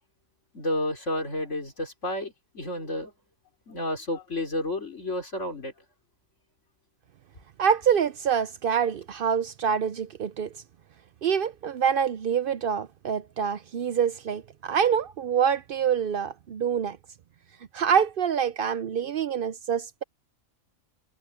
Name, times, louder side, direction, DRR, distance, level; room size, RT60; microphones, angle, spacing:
voice 1, 0.5-3.1 3.7-5.7, left 1 dB, 60° left, 4.3 m, -31 dB
voice 2, 7.6-10.5 11.2-17.0 17.7-20.0, right 7 dB, 65° right, 0.5 m, -26 dB
omnidirectional pair, 1.4 m